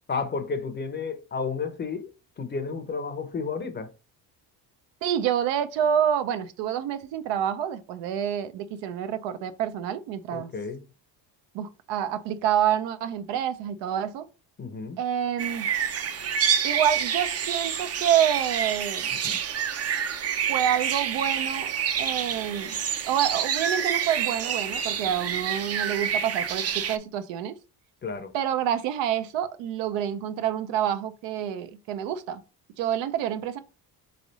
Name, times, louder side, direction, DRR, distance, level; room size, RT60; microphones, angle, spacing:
voice 1, 0.1-3.9 10.3-10.8 14.6-15.0 19.2-19.4 28.0-28.3, left 5 dB, 25° left, 0.6 m, -32 dB
voice 2, 5.0-10.5 11.5-14.3 15.0-15.7 16.6-19.1 20.5-21.7 22.0-22.8 23.1-27.5 28.3-32.4 32.8-33.6, right 9 dB, 85° right, 0.6 m, -27 dB
sound 1, 15.4-27.0, right 8 dB, 35° right, 0.5 m, -28 dB
3.6 x 3.3 x 4.0 m
cardioid pair, 110°, 43 cm